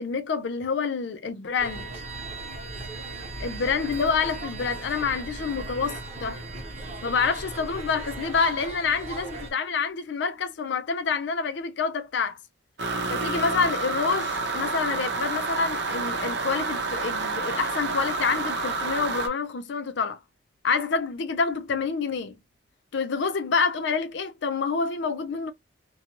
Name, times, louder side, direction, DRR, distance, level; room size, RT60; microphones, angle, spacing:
voice 1, 0.0-1.9 3.4-6.4 7.0-12.4 13.1-20.2 20.6-22.4 22.9-25.5, left 5 dB, 65° left, 0.4 m, -27 dB
sound 1, 1.6-9.5, right 2 dB, 35° right, 1.0 m, -37 dB
sound 2, 12.8-19.3, right 3 dB, 60° right, 0.7 m, -29 dB
2.5 x 2.2 x 2.8 m
head